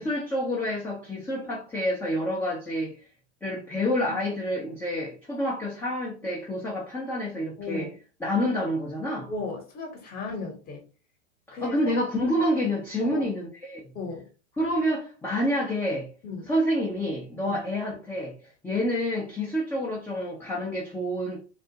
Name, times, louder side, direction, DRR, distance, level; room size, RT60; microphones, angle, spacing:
voice 1, 0.0-3.0 3.4-7.9 8.2-9.3 11.5-13.9 14.6-16.1 16.5-18.3 18.6-21.4, equal, 5° left, 0.4 m, -28 dB
voice 2, 7.6-7.9 9.3-10.8 11.5-11.9 13.0-13.3 13.9-14.3 16.2-16.5 17.4-17.6, left 3 dB, 25° left, 0.9 m, -35 dB
2.3 x 2.0 x 2.7 m
hypercardioid pair, 105°, 35 cm